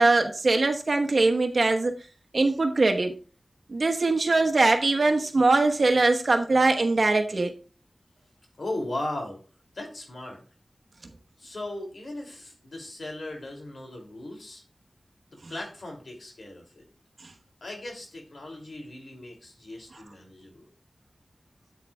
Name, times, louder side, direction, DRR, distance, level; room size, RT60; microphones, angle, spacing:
voice 1, 0.0-2.0 2.3-3.1 3.7-7.5, right 3 dB, 70° right, 4 dB, 1.1 m, -22 dB
voice 2, 8.6-9.4 9.7-10.4 11.4-14.6 15.3-16.8 17.6-20.7, left 1 dB, 80° left, 1 dB, 2.6 m, -37 dB
13.0 x 8.2 x 2.3 m, 0.38 s
wide cardioid pair, 70°, 0 cm